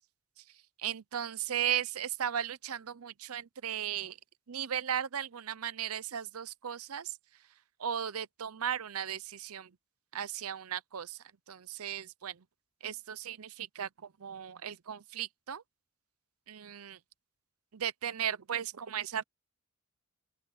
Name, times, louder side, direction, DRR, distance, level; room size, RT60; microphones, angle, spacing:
voice 1, 0.8-4.2 4.5-7.1 7.8-9.7 10.1-11.2 11.5-12.4 12.8-13.9 14.2-15.6 16.5-17.0 17.7-19.2, right 9 dB, 85° right, 0.7 m, -36 dB
open air
head